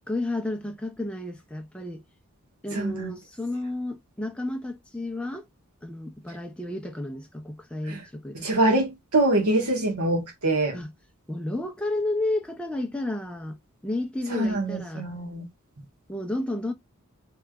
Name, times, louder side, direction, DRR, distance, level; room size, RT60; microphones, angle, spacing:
voice 1, 0.1-2.0 2.6-5.5 5.8-8.4 10.7-10.9 11.3-13.6 13.8-15.1 16.1-16.7, left 2 dB, 5° left, 0.5 m, -31 dB
voice 2, 2.7-3.1 7.9-8.0 8.3-10.8 14.3-15.5, right 2 dB, 85° right, 1.4 m, -24 dB
3.3 x 3.0 x 2.3 m
head